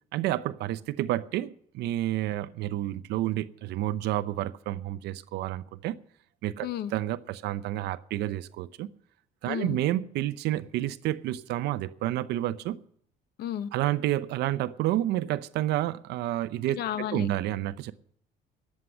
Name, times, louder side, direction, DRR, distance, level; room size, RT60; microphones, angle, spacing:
voice 1, 0.1-6.0 6.4-8.9 9.4-12.8 13.7-16.8 17.1-17.9, right 14 dB, 80° right, 0.7 m, -30 dB
voice 2, 9.5-9.8 13.4-13.7 16.7-17.3, left 10 dB, 70° left, 0.9 m, -32 dB
11.0 x 7.6 x 9.7 m
cardioid pair, 110°, 17 cm